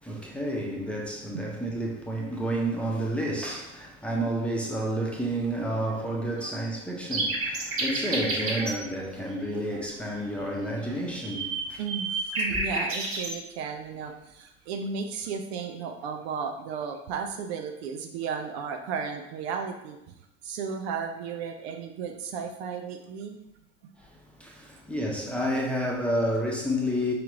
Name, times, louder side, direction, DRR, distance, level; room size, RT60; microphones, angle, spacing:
voice 1, 0.0-11.8 12.5-12.6 24.0-27.1, right 1 dB, 5° left, 0.9 m, -30 dB
sound 1, 7.1-8.8 10.9-13.3, right 3 dB, 35° right, 1.5 m, -29 dB
voice 2, 11.8-20.0 20.4-23.4, right 6 dB, 55° right, 0.6 m, -34 dB
5.0 x 3.0 x 3.6 m
figure-of-eight pair, 70°, 37 cm